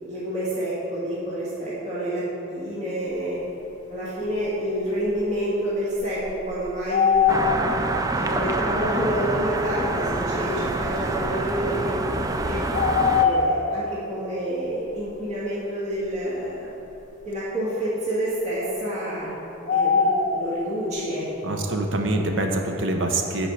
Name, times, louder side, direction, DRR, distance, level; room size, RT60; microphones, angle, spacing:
voice 1, 0.0-3.4 3.9-7.5 8.1-12.6 13.2-16.7 17.2-19.4 19.7-21.6, equal, 35° right, -9 dB, 1.7 m, -28 dB
sound 1, 5.1-5.2 5.9-7.9 8.6-8.7 10.3-10.4 12.7-13.9 19.7-20.5, left 5 dB, 40° left, 0.6 m, -21 dB
sound 2, 7.3-13.2, right 2 dB, 20° right, 0.3 m, -26 dB
voice 2, 21.4-23.5, right 2 dB, 70° right, 3 dB, 0.8 m, -25 dB
8.1 x 4.5 x 5.6 m, 3.0 s
head